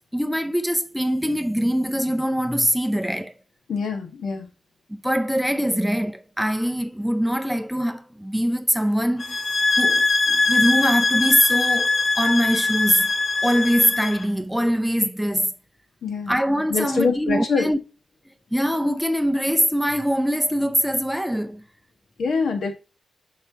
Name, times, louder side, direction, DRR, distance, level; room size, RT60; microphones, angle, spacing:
voice 1, 0.1-3.3 4.9-9.4 9.8-13.1 13.4-15.5 16.3-17.8 18.5-21.6, equal, ahead, 0.5 m, -23 dB
voice 2, 3.7-4.5 16.0-16.4 16.7-17.7 22.2-22.7, left 4 dB, 80° left, 1.5 m, -24 dB
sound 1, 9.2-14.2, left 3 dB, 45° left, 0.7 m, -22 dB
7.7 x 5.6 x 2.8 m
wide cardioid pair, 140°, 0 cm